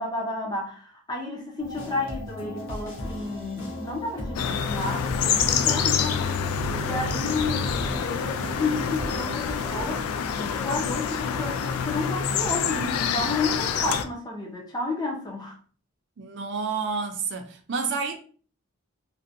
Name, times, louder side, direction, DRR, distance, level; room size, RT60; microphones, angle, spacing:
voice 1, 0.0-6.3 6.6-15.6, left 2 dB, 20° left, 0.5 m, -31 dB
sound 1, 1.6-10.1, left 1 dB, 60° left, 0.7 m, -36 dB
sound 2, 4.4-14.1, left 7 dB, 90° left, 0.3 m, -27 dB
voice 2, 16.2-18.2, right 5 dB, 55° right, 0.4 m, -29 dB
2.6 x 2.1 x 2.6 m
head